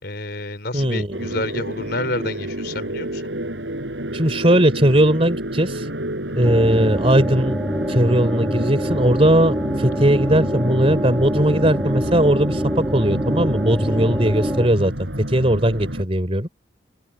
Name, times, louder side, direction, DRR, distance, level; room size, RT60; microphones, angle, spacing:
voice 1, 0.0-3.3 6.3-6.6 13.9-14.3, left 2 dB, 60° left, 5.0 m, -30 dB
voice 2, 0.7-1.3 4.1-5.9 6.3-7.6 7.9-14.9 15.2-16.5, right 1 dB, 30° right, 3.5 m, -18 dB
sound 1, 1.1-16.0, right 1 dB, 70° right, 5.1 m, -29 dB
sound 2, 6.4-14.7, equal, 15° right, 1.2 m, -25 dB
open air
head